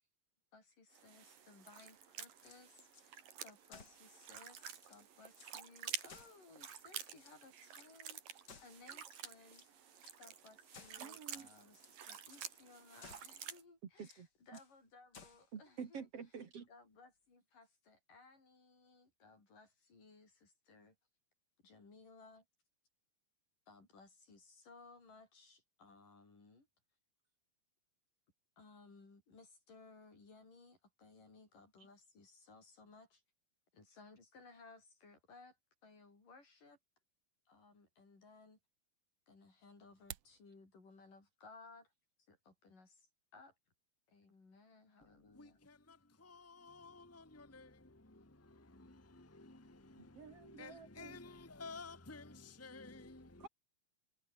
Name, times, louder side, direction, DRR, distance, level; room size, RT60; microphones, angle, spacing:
voice 1, 0.5-9.6 10.2-16.1 16.7-20.9 21.6-22.4 23.7-26.7 28.6-33.2 33.7-35.6 35.8-36.8 37.5-38.6 39.3-41.9 42.3-43.5 44.1-45.6, left 3 dB, 70° left, 9.6 m, -61 dB
sound 1, 0.9-13.6, right 8 dB, 80° right, 4.5 m, -50 dB
sound 2, 2.3-3.1 3.7-4.1 4.5-4.6 4.8-5.6 6.1-6.8 7.1-7.9 8.5-9.0 9.5-10.2 10.7-11.1 11.6-12.0 12.3-12.5 13.0-13.4 14.0-14.7 15.1-15.5, left 5 dB, 35° left, 2.5 m, -59 dB
voice 2, 11.0-11.5 13.8-14.6 15.5-16.7 31.8-31.9 50.0-51.2 53.4-53.5, right 6 dB, 50° right, 2.8 m, -50 dB
sound 3, 39.8-40.4, right 12 dB, 65° right, 1.6 m, -50 dB
voice 3, 45.3-53.5, left 3 dB, 5° left, 2.1 m, -54 dB
omnidirectional pair, 3.9 m